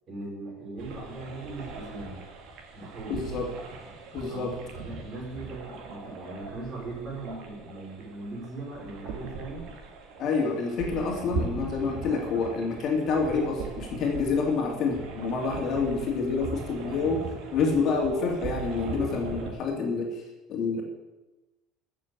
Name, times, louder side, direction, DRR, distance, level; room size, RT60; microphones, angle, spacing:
voice 1, 0.1-2.2 2.7-3.2 4.3-9.7, right 2 dB, 30° right, -2 dB, 5.4 m, -39 dB
sound 1, 0.8-19.5, right 4 dB, 60° right, 2.4 m, -40 dB
voice 2, 3.1-3.5 4.1-4.6 10.2-20.2 20.5-20.8, left 4 dB, 40° left, 0 dB, 2.6 m, -28 dB
15.0 x 7.0 x 8.1 m, 1.1 s
cardioid pair, 165°, 0 cm